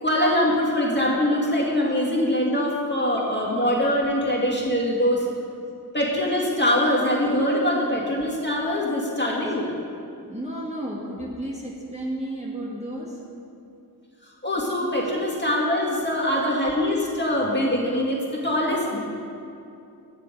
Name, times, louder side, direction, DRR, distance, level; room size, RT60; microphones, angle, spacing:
voice 1, 0.0-5.3 5.9-9.7 14.4-19.0, left 1 dB, 25° left, -4 dB, 2.3 m, -23 dB
voice 2, 10.3-13.2 15.0-15.1 15.9-16.4, right 1 dB, 15° right, -4 dB, 1.4 m, -33 dB
10.0 x 6.7 x 5.2 m, 2.6 s
cardioid pair, 45°, 40 cm